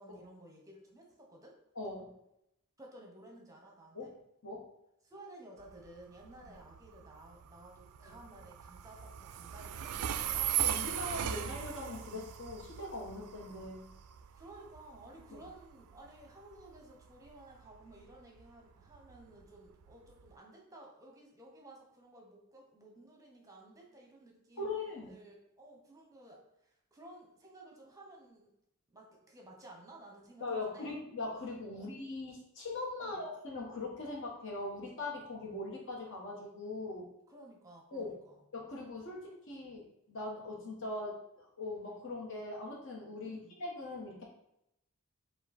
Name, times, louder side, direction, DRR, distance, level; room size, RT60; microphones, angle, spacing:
voice 1, 0.0-1.6 2.8-4.2 5.0-10.6 14.3-28.5 28.9-30.9 31.8-31.9 33.0-33.2 37.3-38.4 43.2-43.6, right 1 dB, 15° right, 0 dB, 0.8 m, -55 dB
voice 2, 1.7-2.1 3.9-4.1 4.4-4.7 8.0-8.1 10.6-13.8 15.3-15.4 24.6-25.2 30.4-37.1 37.9-38.1 38.5-44.2, left 2 dB, 60° left, -2 dB, 1.2 m, -41 dB
Train, 5.6-20.3, right 10 dB, 85° right, 0.3 m, -39 dB
4.8 x 2.4 x 4.2 m, 0.80 s
head